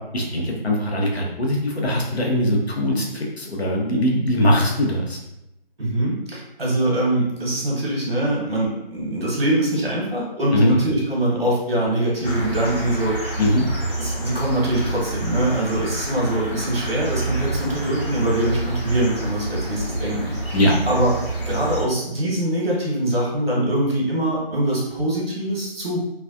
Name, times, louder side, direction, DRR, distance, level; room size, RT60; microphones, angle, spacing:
voice 1, 0.1-5.2 10.5-10.7 13.4-13.6 20.5-20.7, equal, 75° left, -2 dB, 1.0 m, -21 dB
voice 2, 5.8-13.2 14.0-20.6 20.9-26.0, right 1 dB, 65° right, -4 dB, 1.3 m, -23 dB
sound 1, 12.2-21.8, right 1 dB, 55° left, 1.4 m, -28 dB
3.2 x 2.2 x 2.5 m, 0.87 s
figure-of-eight pair, 170°, 32 cm